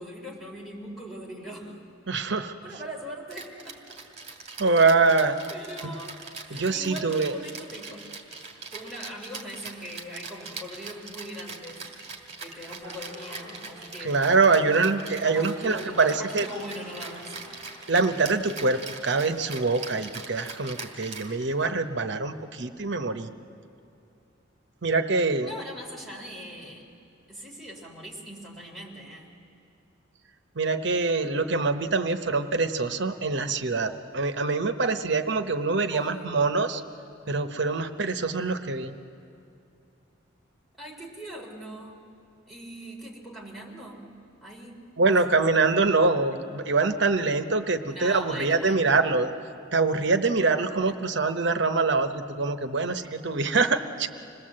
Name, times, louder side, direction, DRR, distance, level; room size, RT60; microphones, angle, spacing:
voice 1, 0.0-1.8 2.6-4.0 4.7-4.8 5.5-8.1 8.6-11.8 12.4-14.4 15.2-17.3 25.4-26.9 27.3-29.3 35.9-36.4 40.7-42.1 42.5-44.1 44.4-45.4 47.9-48.8, equal, ahead, -4 dB, 3.4 m, -41 dB
voice 2, 2.1-2.5 4.6-5.4 5.8-5.9 6.5-7.3 14.0-16.5 17.9-23.3 24.8-25.5 30.5-36.8 37.3-38.9 45.0-49.3 49.7-54.1, right 3 dB, 60° right, 8 dB, 0.9 m, -24 dB
Rattle (instrument), 3.3-21.8, right 4 dB, 35° right, 2.3 m, -42 dB
sound 1, 12.8-18.2, left 1 dB, 20° left, 6.7 m, -47 dB
26.5 x 19.0 x 7.6 m, 2.6 s
head